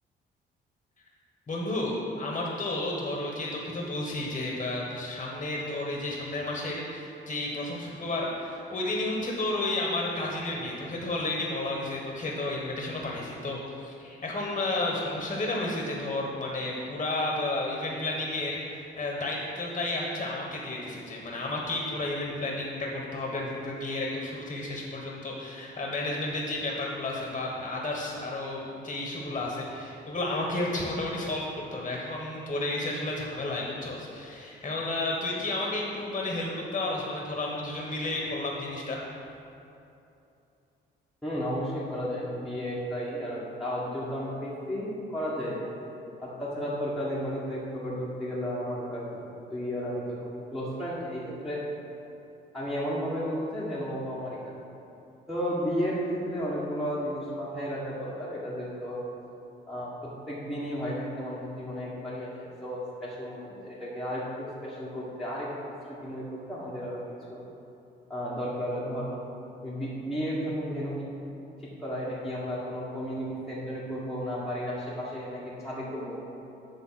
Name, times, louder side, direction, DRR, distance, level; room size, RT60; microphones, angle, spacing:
voice 1, 1.5-39.0, left 2 dB, 30° left, -2 dB, 1.3 m, -32 dB
voice 2, 41.2-45.6 46.2-50.2 50.5-51.6 52.5-54.4 55.3-59.0 59.7-65.5 65.9-67.0 67.3-67.4 68.1-69.1 69.6-71.0 71.6-76.2, equal, ahead, -9 dB, 1.6 m, -33 dB
9.5 x 3.6 x 5.8 m, 2.8 s
cardioid pair, 90°, 20 cm